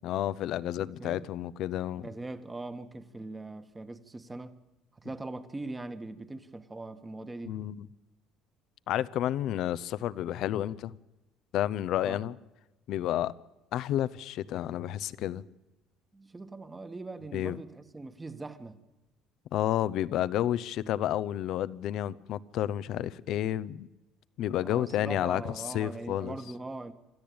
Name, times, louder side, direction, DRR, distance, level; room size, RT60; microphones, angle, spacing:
voice 1, 0.0-2.1 7.5-7.9 8.9-11.0 11.5-12.3 12.9-13.3 13.7-15.4 17.3-17.6 19.5-23.9 24.4-26.3, left 12 dB, 65° left, 0.7 m, -30 dB
voice 2, 1.0-1.3 2.0-4.5 4.9-7.6 12.0-12.3 16.1-18.8 24.6-26.9, right 2 dB, 20° right, 1.7 m, -41 dB
26.5 x 13.5 x 8.8 m
supercardioid pair, 75°, 0 cm